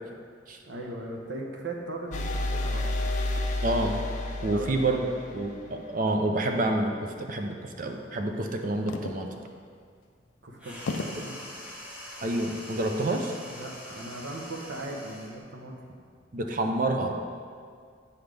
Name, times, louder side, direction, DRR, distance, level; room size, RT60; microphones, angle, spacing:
voice 1, 0.6-3.0 4.5-5.1 10.4-11.4 13.5-15.7 16.6-16.8, right 1 dB, 70° right, 0 dB, 0.9 m, -38 dB
sound 1, 2.1-5.9, left 1 dB, 40° left, 0.5 m, -30 dB
voice 2, 3.6-4.0 4.4-5.0 5.3-6.9 7.2-9.3 12.2-13.4 16.3-17.1, right 2 dB, 45° right, 3 dB, 0.5 m, -28 dB
sound 2, 8.9-9.5 10.0-10.1 10.9-11.4 12.2-12.6, left 3 dB, 90° left, 0.4 m, -35 dB
sound 3, 10.6-15.4, equal, 5° right, 0.9 m, -43 dB
7.9 x 5.7 x 3.4 m, 2.1 s
head